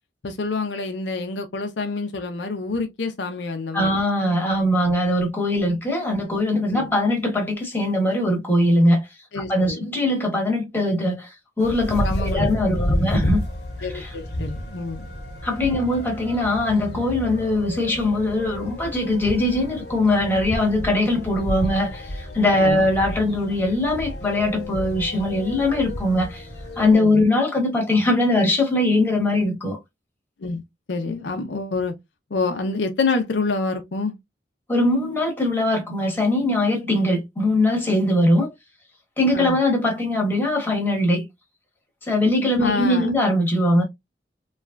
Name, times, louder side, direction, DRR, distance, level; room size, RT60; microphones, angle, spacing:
voice 1, 0.2-3.9 6.7-6.9 9.3-9.8 12.0-12.5 12.8-13.1 13.8-15.0 22.6-22.8 26.9-27.2 30.4-30.6 30.9-31.9 32.3-34.1 39.3-39.6 42.6-43.1, left 3 dB, 85° left, 0.6 m, -27 dB
voice 2, 3.7-9.1 9.5-13.4 13.8-14.1 15.4-26.5 26.8-29.8 34.7-38.5 39.2-41.2 42.0-43.8, left 1 dB, 10° left, 1.1 m, -21 dB
sound 1, 11.6-26.9, left 1 dB, 65° left, 1.1 m, -30 dB
3.2 x 2.3 x 2.3 m
head